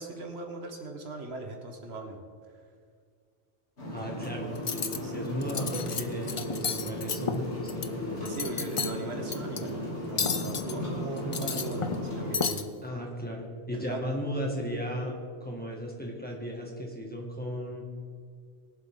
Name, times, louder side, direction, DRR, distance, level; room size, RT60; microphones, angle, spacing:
voice 1, 0.0-2.2 3.9-4.2 5.0-5.2 8.1-12.7 13.7-14.0, right 3 dB, 65° right, 3 dB, 1.3 m, -39 dB
sound 1, 3.8-12.4, left 1 dB, 70° left, 3.3 m, -35 dB
voice 2, 3.9-7.7 12.8-17.8, equal, 10° left, -2 dB, 1.8 m, -35 dB
Cutlery silverware, 4.6-5.0 5.4-6.0 6.3-7.9 8.2-8.9 9.3-9.6 10.2-10.7 11.2-12.1 12.3-12.6, left 6 dB, 40° left, 0.4 m, -32 dB
21.5 x 7.6 x 3.8 m, 2.1 s
omnidirectional pair, 1.2 m